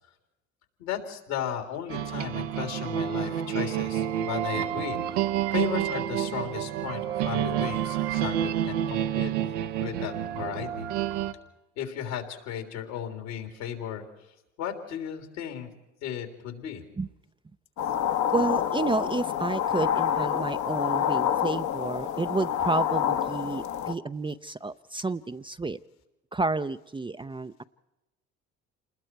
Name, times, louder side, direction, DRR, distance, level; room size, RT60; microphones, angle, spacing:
voice 1, 0.8-9.3 9.8-10.9 11.8-14.0 14.6-15.7 16.0-16.8, left 9 dB, 75° left, 4 dB, 3.5 m, -35 dB
sound 1, 1.9-11.3, right 11 dB, 80° right, 1.0 m, -29 dB
sound 2, 17.8-23.9, left 9 dB, 55° left, 1.3 m, -27 dB
voice 2, 18.3-25.8 26.3-27.6, right 3 dB, 15° right, 10 dB, 0.6 m, -30 dB
28.5 x 20.5 x 4.7 m, 1.0 s
hypercardioid pair, 65°, 35 cm